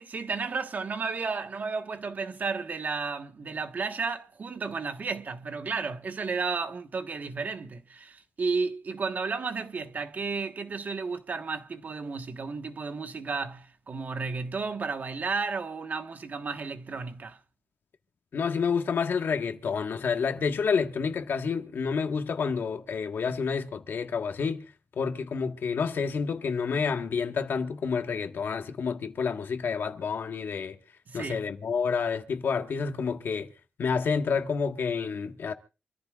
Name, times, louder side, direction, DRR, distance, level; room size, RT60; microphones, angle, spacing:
voice 1, 0.0-17.4 31.1-31.5, right 4 dB, 45° right, 1.4 m, -33 dB
voice 2, 18.3-24.7 25.0-30.8 31.1-33.5 33.8-35.5, left 5 dB, 65° left, 1.6 m, -29 dB
27.0 x 14.0 x 2.5 m
wide cardioid pair, 115°, 4 cm